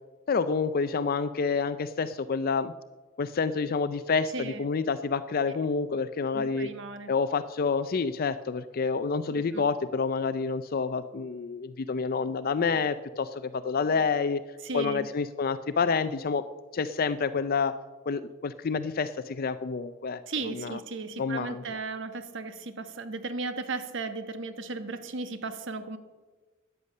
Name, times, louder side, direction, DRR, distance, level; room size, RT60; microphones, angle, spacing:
voice 1, 0.3-2.7 3.2-6.7 7.1-14.4 14.7-16.4 16.7-17.7 18.1-20.8 21.2-21.6, left 5 dB, 45° left, 12 dB, 0.4 m, -28 dB
voice 2, 6.3-7.1 9.5-9.6 14.6-15.1 20.3-26.0, right 3 dB, 60° right, 9 dB, 1.2 m, -35 dB
13.5 x 9.7 x 6.6 m, 1.3 s
head